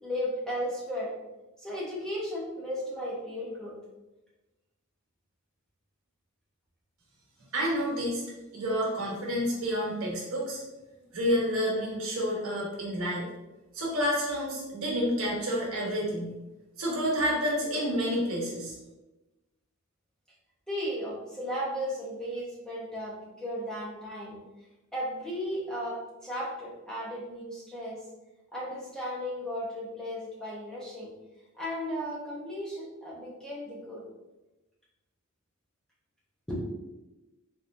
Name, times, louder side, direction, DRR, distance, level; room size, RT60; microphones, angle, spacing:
voice 1, 0.0-1.1 1.6-3.7 20.7-24.4 24.9-28.0 28.5-31.1 31.5-34.0 36.5-36.7, equal, 5° left, -7 dB, 1.0 m, -35 dB
voice 2, 7.5-8.2 8.5-10.6 11.1-13.3 13.7-16.3 16.8-18.7, equal, 75° right, -3 dB, 1.2 m, -29 dB
3.9 x 3.1 x 2.6 m, 1.0 s
head